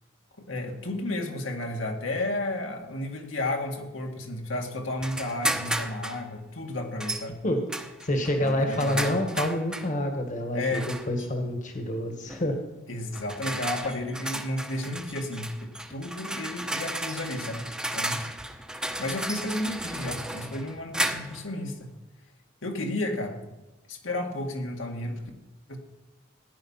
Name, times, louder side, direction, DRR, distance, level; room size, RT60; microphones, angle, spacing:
voice 1, 0.4-7.4 8.4-9.2 10.5-10.9 12.9-17.6 17.9-18.2 19.0-21.9 22.6-23.4 23.9-25.2 25.7-25.8, left 1 dB, 75° left, 2 dB, 2.1 m, -32 dB
sound 1, 5.0-6.2 7.0-7.3 7.7-9.9 10.7-11.3 12.3-12.5 13.1-21.5, right 1 dB, 5° right, 1.0 m, -33 dB
voice 2, 8.0-12.6, left 1 dB, 40° left, 4 dB, 1.6 m, -27 dB
16.5 x 10.0 x 5.7 m, 1.0 s
head